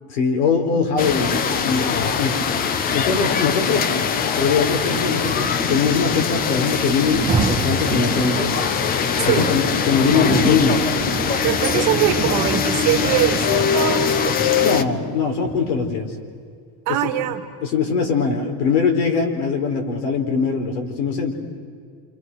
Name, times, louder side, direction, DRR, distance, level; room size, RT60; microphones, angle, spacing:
voice 1, 0.1-2.4 2.9-3.9 4.4-8.6 9.2-10.8 14.6-16.1 17.6-21.4, left 5 dB, 80° left, 3 dB, 4.4 m, -21 dB
voice 2, 0.7-1.2 9.2-9.5 11.4-14.4 16.9-17.4, right 12 dB, 40° right, 6 dB, 2.0 m, -23 dB
sound 1, 1.0-14.8, left 6 dB, 20° left, 0.5 m, -22 dB
Rain, 7.0-16.1, right 5 dB, 20° right, 1.9 m, -30 dB
28.0 x 27.5 x 6.3 m, 2.1 s
cardioid pair, 165°, 45 cm